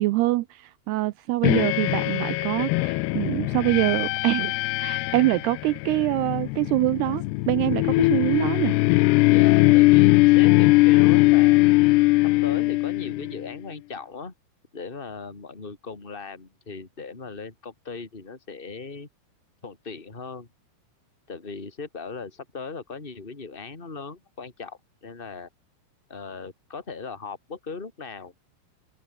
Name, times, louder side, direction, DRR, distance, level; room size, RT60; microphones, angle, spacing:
voice 1, 0.0-8.8, right 18 dB, 85° right, 2.4 m, -25 dB
sound 1, 1.4-13.5, left 21 dB, 85° left, 2.4 m, -20 dB
voice 2, 9.2-11.7 12.4-14.3 14.7-19.1 19.6-20.5 21.3-25.5 26.1-28.3, left 4 dB, 15° left, 2.9 m, -38 dB
open air
omnidirectional pair, 5.3 m